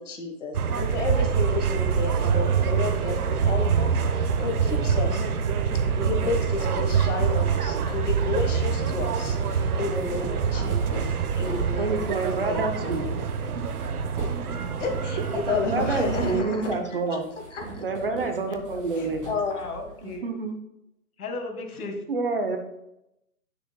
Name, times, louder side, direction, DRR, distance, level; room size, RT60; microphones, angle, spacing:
voice 1, 0.0-5.3 6.0-11.1 11.3-13.2 14.8-16.8 17.5-17.8 19.0-19.6, left 4 dB, 55° left, 3 dB, 1.6 m, -31 dB
sound 1, 0.5-16.4, right 6 dB, 80° right, 0.9 m, -25 dB
sound 2, 9.0-11.7 12.0-20.1, right 2 dB, 20° right, 1.9 m, -41 dB
voice 2, 10.5-11.0 11.8-13.0 13.5-13.6 15.5-17.2 17.8-19.3 20.0-20.6 22.1-22.6, right 3 dB, 40° right, 6 dB, 0.7 m, -28 dB
voice 3, 19.5-20.3 21.2-22.0, left 3 dB, 75° left, 4 dB, 1.8 m, -36 dB
9.1 x 6.6 x 2.3 m, 0.85 s
hypercardioid pair, 165°, 44 cm